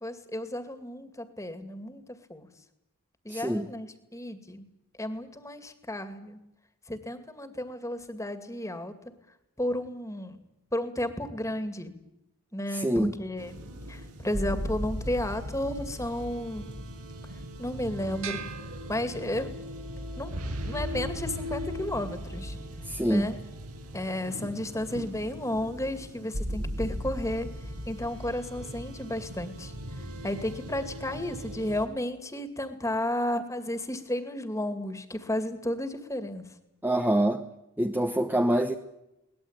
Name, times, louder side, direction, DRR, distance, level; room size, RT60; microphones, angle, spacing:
voice 1, 0.0-2.0 2.3-2.5 3.2-4.7 5.0-6.4 6.9-8.9 9.6-10.4 10.7-11.9 12.5-13.5 13.9-16.7 17.6-18.5 18.9-19.5 20.2-20.4 20.6-22.6 23.1-23.4 23.9-27.5 27.9-29.7 30.2-36.4, left 1 dB, 15° left, 9 dB, 2.3 m, -33 dB
voice 2, 3.3-3.7 12.7-13.1 22.8-23.3 36.8-37.4 37.8-38.8, right 1 dB, 10° right, 5 dB, 1.0 m, -25 dB
sound 1, 13.4-31.9, equal, 80° right, 5.6 m, -38 dB
sound 2, 18.2-19.7, right 8 dB, 65° right, 3.9 m, -41 dB
22.5 x 19.5 x 8.9 m, 0.89 s
head